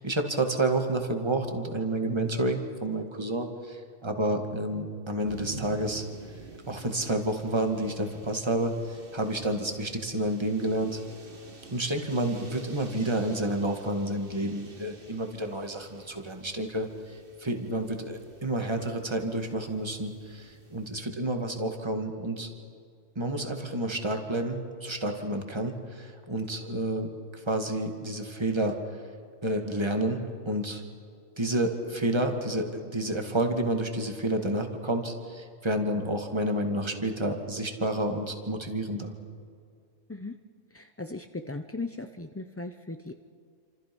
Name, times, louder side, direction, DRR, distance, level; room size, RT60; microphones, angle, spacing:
voice 1, 0.0-6.0 6.7-11.0 11.7-22.5 23.2-28.8 29.4-30.8 31.4-39.1, right 1 dB, 20° right, 4 dB, 2.1 m, -30 dB
sound 1, 5.3-20.9, right 3 dB, 40° right, 2.0 m, -49 dB
voice 2, 40.7-43.2, left 2 dB, 15° left, 5 dB, 0.4 m, -37 dB
28.5 x 26.5 x 5.5 m, 2.3 s
omnidirectional pair, 1.5 m